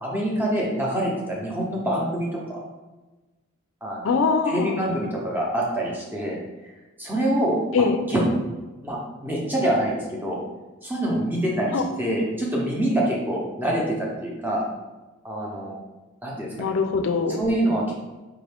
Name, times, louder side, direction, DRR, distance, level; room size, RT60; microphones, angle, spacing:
voice 1, 0.0-2.6 3.8-4.1 4.5-6.4 7.0-8.2 8.8-10.4 10.8-14.7 15.2-15.7 16.2-16.7 17.4-17.9, right 1 dB, 10° right, -3 dB, 0.6 m, -25 dB
voice 2, 4.0-4.9 7.7-8.0 11.7-11.8 16.6-17.4, left 4 dB, 60° left, 6 dB, 0.3 m, -22 dB
4.6 x 2.5 x 3.4 m, 1.2 s
head